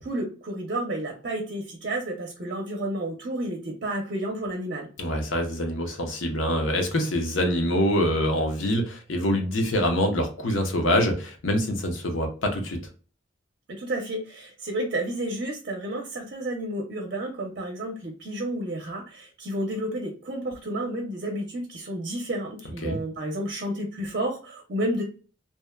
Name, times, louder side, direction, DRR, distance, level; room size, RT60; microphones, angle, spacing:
voice 1, 0.0-4.9 13.7-25.0, right 1 dB, 50° right, 0 dB, 0.6 m, -31 dB
voice 2, 5.0-12.8 22.8-23.0, left 1 dB, 80° left, 4 dB, 0.7 m, -25 dB
2.7 x 2.1 x 2.2 m, 0.38 s
head